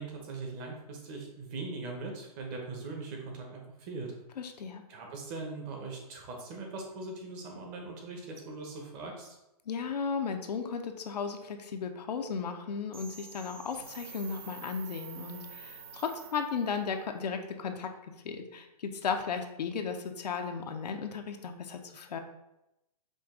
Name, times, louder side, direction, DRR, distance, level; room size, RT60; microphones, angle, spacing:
voice 1, 0.0-4.1 4.9-9.3, right 3 dB, 30° right, 1 dB, 0.8 m, -40 dB
voice 2, 4.4-4.8 9.7-17.9 18.2-22.2, left 6 dB, 85° left, 5 dB, 0.6 m, -35 dB
sound 1, 12.9-16.8, right 7 dB, 60° right, 0.8 m, -48 dB
5.1 x 2.3 x 3.6 m, 0.91 s
hypercardioid pair, 145°, 20 cm